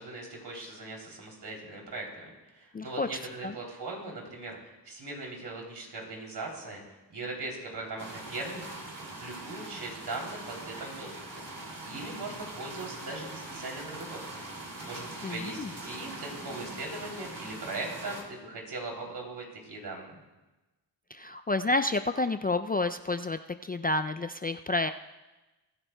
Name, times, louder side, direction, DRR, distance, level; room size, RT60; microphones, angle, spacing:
voice 1, 0.0-8.6 9.1-14.4 14.8-20.2, right 2 dB, 60° right, 0 dB, 3.2 m, -40 dB
voice 2, 2.7-3.1 3.4-3.5 15.2-15.7 21.1-24.9, left 2 dB, 20° left, 9 dB, 0.4 m, -30 dB
sound 1, 8.0-18.2, right 2 dB, 45° right, 2.7 m, -42 dB
22.0 x 11.0 x 2.3 m, 1.1 s
cardioid pair, 50°, 44 cm